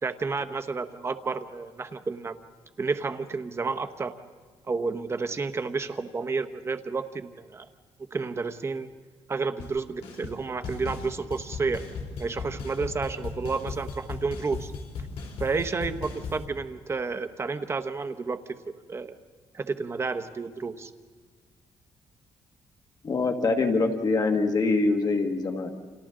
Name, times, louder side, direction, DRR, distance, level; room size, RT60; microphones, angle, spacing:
voice 1, 0.0-2.4 2.8-4.1 4.6-7.6 8.1-8.9 9.3-11.9 12.2-14.7 15.4-18.6 18.9-19.1 19.5-20.9, right 4 dB, 25° right, 9 dB, 0.9 m, -31 dB
sound 1, 9.6-9.7 10.0-10.4 10.6-16.4, left 4 dB, 70° left, 3.3 m, -37 dB
voice 2, 23.0-25.7, left 3 dB, 40° left, 4 dB, 1.6 m, -24 dB
30.0 x 27.0 x 3.8 m, 1.5 s
cardioid pair, 140°, 11 cm